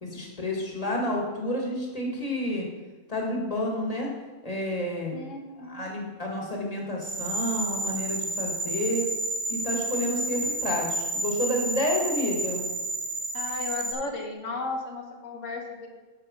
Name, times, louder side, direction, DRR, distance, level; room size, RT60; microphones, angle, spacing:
voice 1, 0.0-2.7 3.1-4.1 4.4-5.2 5.7-9.0 9.5-12.6, left 1 dB, 30° left, -1 dB, 1.9 m, -30 dB
voice 2, 5.1-6.0 13.3-15.9, left 3 dB, 90° left, 2 dB, 1.5 m, -35 dB
sound 1, 7.0-13.9, right 2 dB, 45° right, 1.2 m, -31 dB
9.0 x 6.1 x 5.3 m, 1.3 s
omnidirectional pair, 1.3 m